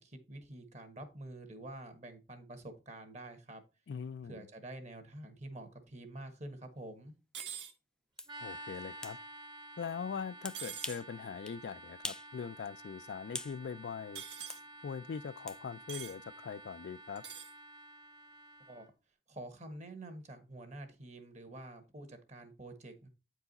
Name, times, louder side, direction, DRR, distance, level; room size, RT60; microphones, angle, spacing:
voice 1, 0.0-3.6 4.2-7.1 18.7-18.9 19.3-23.1, right 1 dB, 40° right, 1.3 m, -48 dB
voice 2, 3.9-4.5 8.4-9.2 9.8-14.2 14.8-17.2, left 6 dB, 80° left, 0.3 m, -41 dB
sound 1, 7.3-7.7 10.5-11.0 14.2-14.6 15.9-16.2 17.2-17.5, right 8 dB, 90° right, 1.3 m, -44 dB
sound 2, 7.4-7.5 8.2-8.3 9.0-9.2 10.4-11.1 11.5-11.6 12.0-12.3 12.6-13.6 14.5-14.6 15.5-15.6, left 2 dB, 5° left, 0.3 m, -43 dB
sound 3, 8.3-18.9, right 1 dB, 25° right, 0.9 m, -51 dB
8.6 x 4.7 x 4.0 m
head